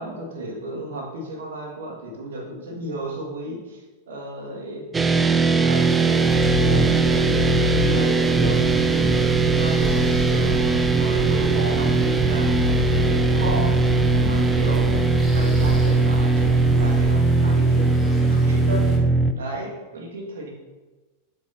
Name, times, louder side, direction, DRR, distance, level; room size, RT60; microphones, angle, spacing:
voice 1, 0.0-14.0 14.2-18.9 19.4-20.5, right 1 dB, 60° right, -2 dB, 1.8 m, -34 dB
sound 1, 4.9-19.3, right 3 dB, 15° right, 0.4 m, -20 dB
sound 2, 5.7-19.0, left 2 dB, 20° left, 1.3 m, -43 dB
sound 3, 6.3-17.1, left 1 dB, 35° right, 1.6 m, -28 dB
7.7 x 6.7 x 2.8 m, 1.2 s
figure-of-eight pair, 90°, 0 cm